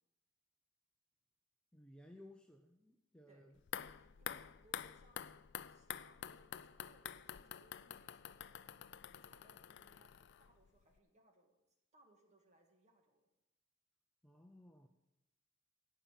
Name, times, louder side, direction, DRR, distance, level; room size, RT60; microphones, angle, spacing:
voice 1, 1.7-3.6 14.2-14.9, left 1 dB, 5° left, 3 dB, 0.5 m, -59 dB
sound 1, 3.6-10.7 11.0-11.1, left 9 dB, 50° left, 0.4 m, -48 dB
voice 2, 4.0-5.4 5.7-11.5 11.9-13.2, right 1 dB, 30° right, 2 dB, 2.0 m, -70 dB
17.0 x 5.7 x 7.6 m, 0.93 s
head